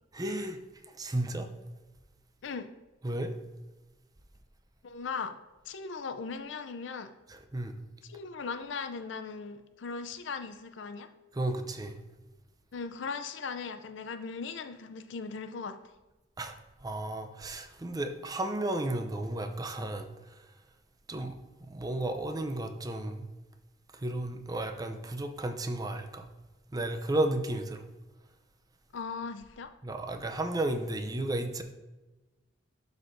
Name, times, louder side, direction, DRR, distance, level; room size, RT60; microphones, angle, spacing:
voice 1, 0.1-0.6 0.9-1.5 3.0-3.3 7.3-7.8 11.3-12.0 16.4-16.6 16.8-20.4 21.1-23.3 23.9-26.3 26.7-27.8 29.8-31.6, right 1 dB, 20° right, 6 dB, 0.5 m, -33 dB
voice 2, 4.8-5.4 5.7-7.1 8.1-11.1 12.7-15.8 28.9-29.7, left 5 dB, 70° left, 9 dB, 0.5 m, -38 dB
12.0 x 4.3 x 2.6 m, 1.1 s
head